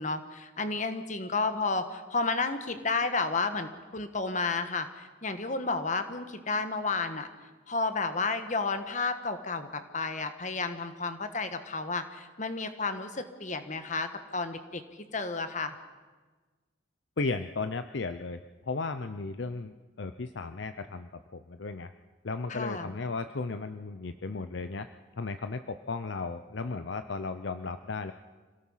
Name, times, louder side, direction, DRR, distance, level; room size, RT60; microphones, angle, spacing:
voice 1, 0.0-7.3 7.7-14.8 15.1-15.8 22.5-22.9, left 3 dB, 40° left, 9 dB, 1.4 m, -32 dB
voice 2, 17.2-18.4 18.7-21.9 22.2-24.9 25.2-28.1, left 3 dB, 60° left, 9 dB, 0.6 m, -35 dB
27.0 x 17.0 x 5.7 m, 1.3 s
head